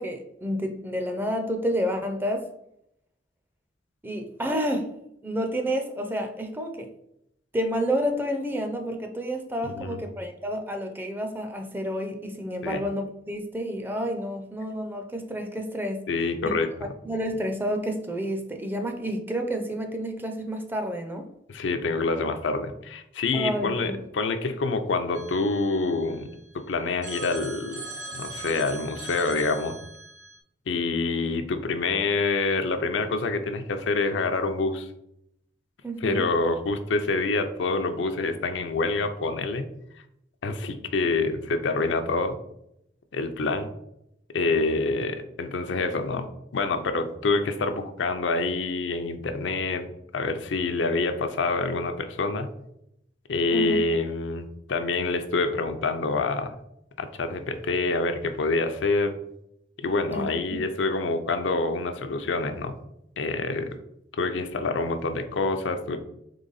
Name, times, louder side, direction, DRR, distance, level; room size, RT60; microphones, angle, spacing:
voice 1, 0.0-2.5 4.0-4.9 5.2-6.9 7.5-16.0 17.0-21.3 23.3-24.0 35.8-36.3 53.5-53.8 60.1-60.6, equal, 10° right, 5 dB, 0.4 m, -30 dB
voice 2, 16.1-16.9 21.5-26.3 26.5-27.8 28.1-29.8 30.7-34.9 36.0-39.7 40.4-42.4 43.1-43.7 44.3-46.3 46.5-52.5 53.3-56.5 57.0-59.1 59.8-62.7 63.2-63.7 64.1-66.0, left 3 dB, 80° left, 7 dB, 0.5 m, -26 dB
Telephone, 25.1-26.5 27.0-30.4, right 3 dB, 85° right, 1.2 m, -40 dB
3.8 x 3.3 x 3.9 m, 0.78 s
head